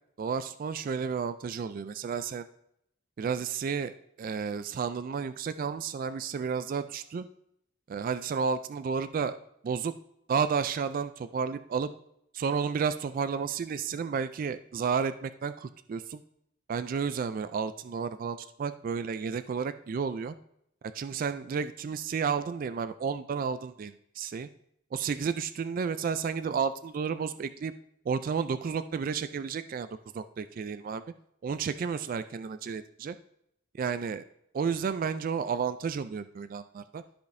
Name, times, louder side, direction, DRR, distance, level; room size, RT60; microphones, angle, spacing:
voice 1, 0.2-2.5 3.2-3.9 4.2-7.2 7.9-9.4 9.6-9.9 10.3-11.9 12.3-16.2 16.7-20.3 20.9-24.5 24.9-27.7 28.1-29.9 30.1-31.0 31.4-33.2 33.7-34.2 34.5-37.0, right 6 dB, 45° right, 12 dB, 0.3 m, -32 dB
13.0 x 5.1 x 2.6 m, 0.75 s
head